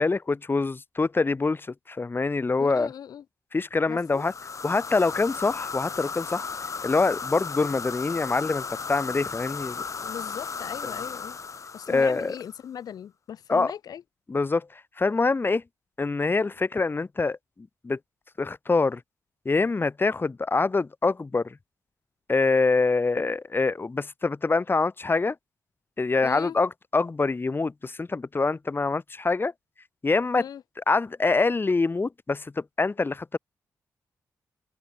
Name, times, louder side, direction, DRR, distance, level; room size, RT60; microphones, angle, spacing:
voice 1, 0.0-2.9 3.5-4.3 4.6-6.5 6.8-9.8 11.9-12.3 13.5-13.7 14.3-14.7 15.0-15.6 16.0-17.4 17.8-18.0 18.4-19.0 19.4-21.5 22.3-25.3 26.0-29.5 30.0-30.4 30.9-33.4, left 3 dB, 35° left, 1.7 m, -25 dB
voice 2, 2.6-3.2 3.9-4.2 10.0-11.4 11.7-14.0 26.2-26.5 30.4-30.6, left 9 dB, 85° left, 1.7 m, -38 dB
sound 1, 4.1-12.6, left 5 dB, 55° left, 1.9 m, -35 dB
cardioid pair, 65°, 6 cm